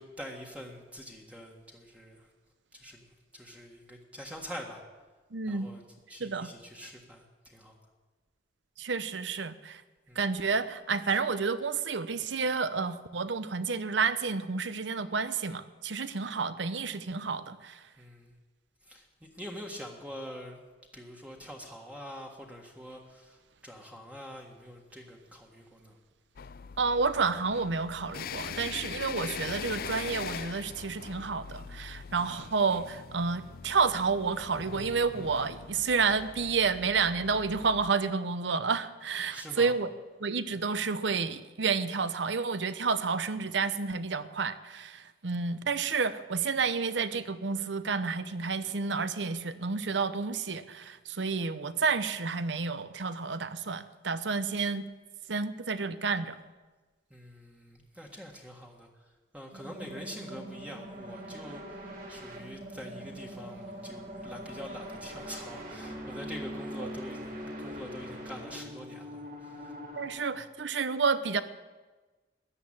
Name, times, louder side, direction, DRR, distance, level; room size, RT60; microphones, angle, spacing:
voice 1, 0.0-2.3 2.7-3.1 3.3-4.8 5.5-5.8 6.1-7.8 10.1-10.3 18.0-18.3 18.8-20.6 20.9-26.0 39.3-39.7 57.1-58.9 59.3-61.8 62.1-69.8 70.0-70.4, equal, 5° right, 0 dB, 1.6 m, -45 dB
voice 2, 5.3-5.7 6.2-6.5 8.8-9.8 10.2-17.8 26.8-39.9 40.2-54.8 55.3-56.4 66.8-66.9 70.0-71.4, right 5 dB, 70° right, 13 dB, 0.8 m, -30 dB
sound 1, 26.4-37.9, left 6 dB, 50° left, 0.4 m, -42 dB
sound 2, 59.5-70.1, equal, 50° right, 3.5 m, -42 dB
14.0 x 10.5 x 8.8 m, 1.3 s
head